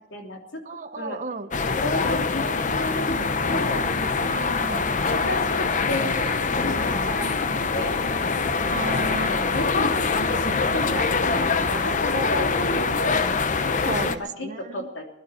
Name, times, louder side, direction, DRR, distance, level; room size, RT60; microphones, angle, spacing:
voice 1, 0.0-1.2 1.7-3.8 5.1-6.3 6.6-8.0 8.8-13.1 13.6-15.0, left 1 dB, 75° left, 2 dB, 3.2 m, -32 dB
voice 2, 0.7-1.5 4.2-4.9 8.7-9.4 13.9-14.9, right 3 dB, 40° right, 9 dB, 0.9 m, -33 dB
sound 1, 1.5-14.2, left 4 dB, 40° left, 0.8 m, -24 dB
22.0 x 12.5 x 4.4 m, 0.85 s
head